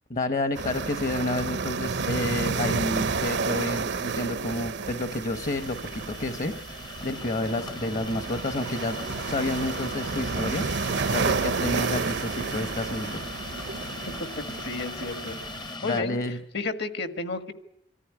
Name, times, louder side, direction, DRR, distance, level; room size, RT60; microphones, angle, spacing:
voice 1, 0.1-9.0 9.3-10.6 11.1-13.2 15.8-16.4, left 2 dB, 40° left, 9 dB, 1.0 m, -30 dB
sound 1, 0.5-15.8, right 4 dB, 65° right, 0.8 m, -31 dB
sound 2, 4.0-4.3 5.7-8.3 9.7-12.3, left 2 dB, 75° left, 4.1 m, -57 dB
sound 3, 5.3-16.0, left 3 dB, 25° left, 0.8 m, -39 dB
voice 2, 14.4-15.4 15.8-16.2 16.5-17.5, left 3 dB, 60° left, 9 dB, 1.7 m, -32 dB
25.0 x 14.0 x 9.7 m, 0.80 s
head